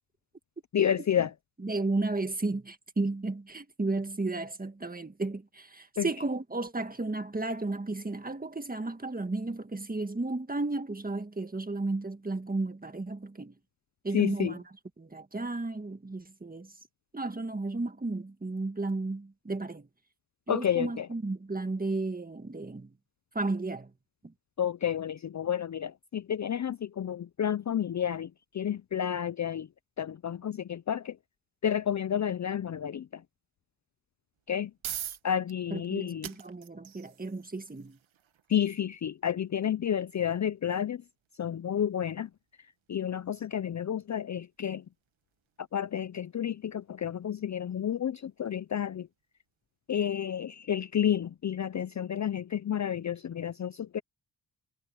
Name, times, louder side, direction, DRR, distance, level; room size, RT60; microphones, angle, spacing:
voice 1, 0.7-1.3 6.0-6.1 14.1-14.5 20.5-21.1 24.6-29.7 30.0-31.2 31.6-33.2 34.5-34.7 35.2-36.3 38.5-41.0 41.4-42.3 42.9-44.8 45.7-49.1 49.9-54.0, left 9 dB, 40° left, 0.5 m, -30 dB
voice 2, 1.6-13.5 14.0-14.6 15.0-16.7 17.1-19.9 20.5-22.9 23.3-23.9 24.2-24.3 35.7-38.0, right 2 dB, 20° right, 1.7 m, -33 dB
sound 1, 34.3-49.2, right 10 dB, 85° right, 1.7 m, -48 dB
cardioid pair, 95°, 46 cm